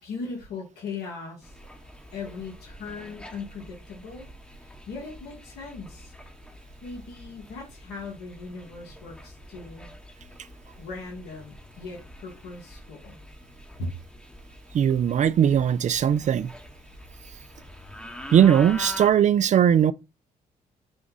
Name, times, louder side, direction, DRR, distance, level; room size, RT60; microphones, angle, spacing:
voice 1, 0.0-1.6 2.1-4.3 4.5-6.1 6.8-9.9 10.8-13.2 13.8-13.9, left 4 dB, 85° left, 1.5 m, -39 dB
sound 1, 1.4-19.1, left 1 dB, 5° left, 0.9 m, -45 dB
voice 2, 14.7-16.5 18.3-19.9, right 9 dB, 50° right, 0.4 m, -19 dB
5.1 x 2.3 x 3.8 m
supercardioid pair, 60°, 16 cm